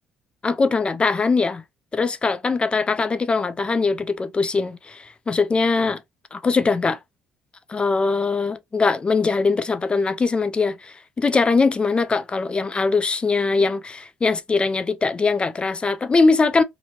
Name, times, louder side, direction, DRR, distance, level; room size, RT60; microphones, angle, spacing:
voice 1, 0.4-1.6 1.9-6.0 6.3-7.0 7.7-16.6, left 4 dB, 30° left, 0.4 m, -21 dB
2.8 x 2.6 x 2.9 m
supercardioid pair, 70°, 4 cm